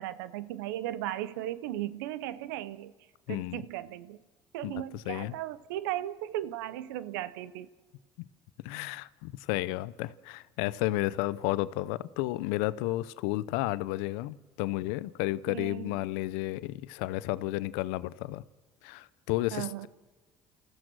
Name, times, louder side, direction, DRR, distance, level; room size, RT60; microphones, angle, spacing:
voice 1, 0.0-2.9 3.3-4.2 4.5-7.7 15.5-16.0 19.5-19.9, right 13 dB, 90° right, 0.7 m, -36 dB
voice 2, 3.3-3.6 4.6-5.3 8.6-18.4 18.8-19.9, left 17 dB, 85° left, 0.6 m, -32 dB
29.5 x 14.5 x 6.3 m
supercardioid pair, 70°, 10 cm